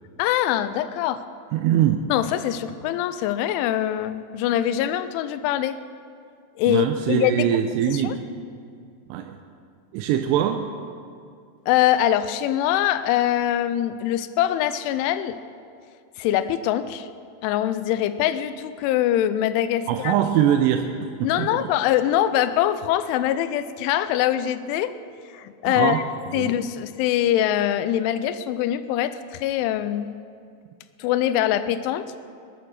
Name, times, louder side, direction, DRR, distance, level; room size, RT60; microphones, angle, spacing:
voice 1, 0.2-1.2 2.1-5.8 6.6-7.5 7.9-8.2 11.7-15.4 16.2-17.1 17.4-20.1 21.2-24.9 25.3-26.0 26.3-30.2 31.0-32.1, left 11 dB, 85° left, 13 dB, 3.0 m, -23 dB
voice 2, 1.5-2.0 6.7-8.2 9.1-9.4 9.9-10.6 19.9-20.9 21.2-21.7 25.7-26.0 26.4-26.6, right 10 dB, 80° right, 6 dB, 2.5 m, -22 dB
21.0 x 9.1 x 6.3 m, 2.3 s
omnidirectional pair, 5.5 m